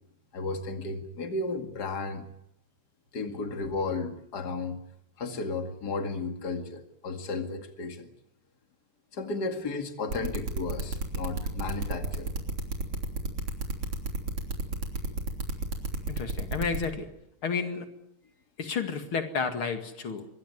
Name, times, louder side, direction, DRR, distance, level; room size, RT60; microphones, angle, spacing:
voice 1, 0.3-2.3 3.1-4.8 5.2-8.1 9.1-12.3 15.1-15.2, left 3 dB, 50° left, 6 dB, 2.7 m, -34 dB
sound 1, 10.1-16.9, right 3 dB, 80° right, 4.2 m, -31 dB
voice 2, 16.1-17.1 17.4-17.9 18.6-20.3, left 5 dB, 75° left, 7 dB, 3.0 m, -31 dB
24.5 x 20.5 x 9.6 m, 0.76 s
omnidirectional pair, 2.4 m